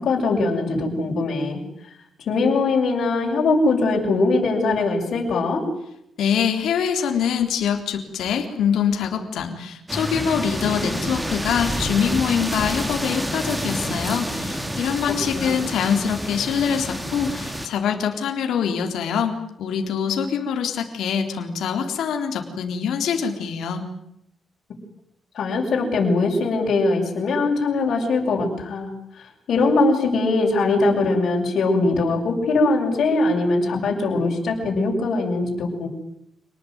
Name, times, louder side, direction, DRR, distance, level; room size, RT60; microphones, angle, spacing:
voice 1, 0.0-1.6 2.3-5.6 15.3-15.6 25.3-28.9 29.2-35.9, left 3 dB, 70° left, -2 dB, 7.3 m, -21 dB
voice 2, 6.2-23.8, left 7 dB, 90° left, 4 dB, 3.8 m, -24 dB
sound 1, 9.9-17.7, equal, 10° right, 3.8 m, -28 dB
28.0 x 19.5 x 9.5 m, 0.77 s
cardioid pair, 105°, 0 cm